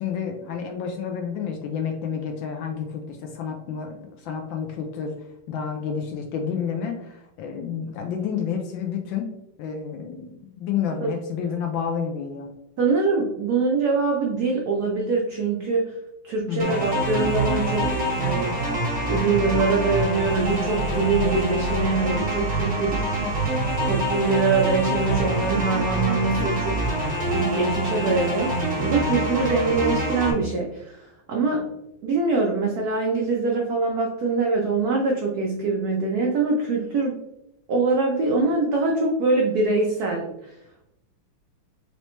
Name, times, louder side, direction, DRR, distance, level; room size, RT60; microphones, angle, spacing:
voice 1, 0.0-5.1 5.5-9.3 9.6-12.5 16.5-16.8, left 7 dB, 75° left, 3 dB, 1.2 m, -30 dB
voice 2, 12.8-15.9 16.2-18.6 19.1-23.1 23.8-26.9 27.2-31.0 31.3-31.7 32.0-37.2 37.7-40.5, right 3 dB, 80° right, -1 dB, 0.8 m, -23 dB
sound 1, 16.6-30.3, right 1 dB, 35° right, 0.6 m, -25 dB
4.1 x 3.2 x 3.0 m, 0.84 s
omnidirectional pair, 2.4 m